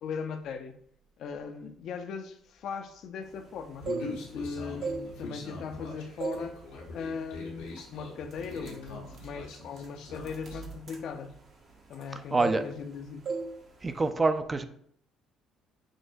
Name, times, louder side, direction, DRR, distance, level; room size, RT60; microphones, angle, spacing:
voice 1, 0.0-0.8 1.2-3.9 4.2-6.6 6.9-11.3 11.9-13.3, left 5 dB, 65° left, 7 dB, 0.4 m, -39 dB
sound 1, 3.6-4.4 4.7-5.8 6.2-6.5 6.9-7.2 7.8-7.9 8.3-12.1 12.4-13.0 13.3-13.5 13.8-14.1, right 4 dB, 55° right, 0.8 m, -37 dB
Human voice, 3.8-10.6, left 3 dB, 85° left, 0.9 m, -43 dB
voice 2, 12.2-12.6 13.8-14.7, right 3 dB, 30° right, 10 dB, 0.4 m, -26 dB
6.2 x 2.1 x 2.6 m, 0.65 s
supercardioid pair, 65°, 0 cm